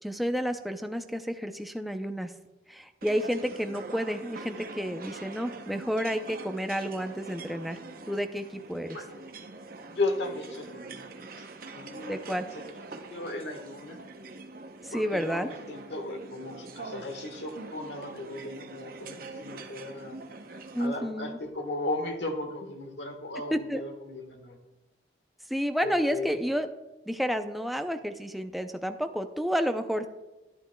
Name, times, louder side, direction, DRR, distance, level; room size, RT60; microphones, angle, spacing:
voice 1, 0.0-2.3 2.7-7.8 8.1-9.0 12.1-12.4 14.8-15.5 20.7-21.4 23.5-23.8 25.5-26.7 27.1-30.1, equal, ahead, 7 dB, 0.4 m, -30 dB
sound 1, 3.0-20.9, right 3 dB, 55° right, 0.7 m, -44 dB
voice 2, 8.9-9.3 9.9-11.0 11.7-12.4 12.9-14.0 14.9-20.2 20.8-24.6 25.8-26.3, left 2 dB, 80° left, 5 dB, 1.3 m, -36 dB
11.5 x 11.0 x 2.2 m, 1.1 s
head